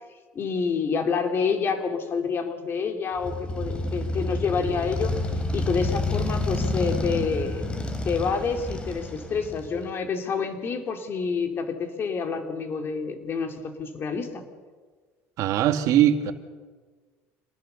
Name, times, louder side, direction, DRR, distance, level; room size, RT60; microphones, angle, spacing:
voice 1, 0.3-5.1 5.5-7.7 8.0-14.4, left 5 dB, 35° left, 6 dB, 2.8 m, -28 dB
Motorcycle, 3.2-9.9, left 2 dB, 15° left, 3.0 m, -29 dB
voice 2, 15.4-16.3, right 11 dB, 60° right, 8 dB, 1.6 m, -21 dB
26.5 x 19.0 x 6.9 m, 1.4 s
cardioid pair, 125°, 6 cm